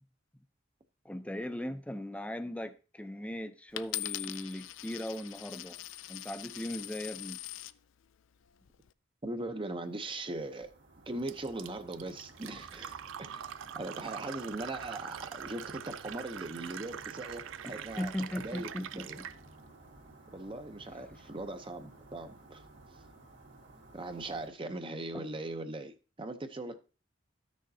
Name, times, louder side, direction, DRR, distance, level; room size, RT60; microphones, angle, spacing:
voice 1, 1.0-5.8 6.1-7.4 17.7-19.3 25.1-25.2, left 1 dB, 5° left, 0.6 m, -38 dB
Coin (dropping), 3.8-7.8 8.5-8.9, left 15 dB, 90° left, 0.4 m, -41 dB
voice 2, 9.2-10.7 11.1-19.2 20.3-22.6 23.9-26.8, right 2 dB, 25° right, 0.7 m, -40 dB
sound 1, 10.0-24.5, right 2 dB, 65° right, 2.0 m, -55 dB
Fill (with liquid), 11.3-19.4, right 9 dB, 85° right, 0.4 m, -44 dB
14.5 x 6.4 x 2.7 m
head